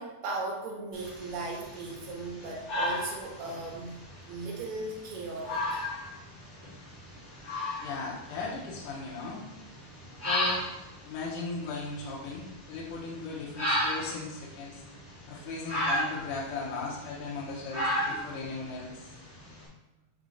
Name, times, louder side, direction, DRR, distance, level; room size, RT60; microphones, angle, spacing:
voice 1, 0.0-5.9 10.1-10.2, right 3 dB, 70° right, -1 dB, 2.4 m, -37 dB
sound 1, 0.9-19.6, left 1 dB, 85° left, 0.5 m, -35 dB
voice 2, 7.8-9.5 10.2-10.6 11.0-14.8 15.3-19.2, left 4 dB, 70° left, -4 dB, 2.1 m, -37 dB
6.3 x 3.7 x 4.0 m, 0.99 s
omnidirectional pair, 4.4 m